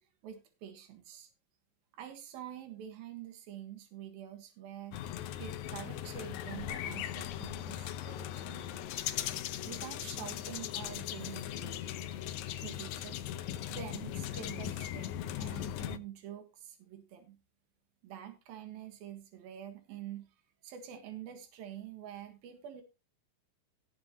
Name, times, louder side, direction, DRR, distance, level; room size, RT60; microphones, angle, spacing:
voice 1, 0.2-1.3 1.9-5.0 5.4-8.9 9.7-11.8 12.6-13.2 13.7-15.1 15.4-17.4 18.0-20.3 20.6-22.8, right 10 dB, 80° right, 6 dB, 3.4 m, -46 dB
sound 1, 4.9-16.0, left 11 dB, 75° left, 1.7 m, -39 dB
18.0 x 6.7 x 3.0 m, 0.29 s
omnidirectional pair, 4.1 m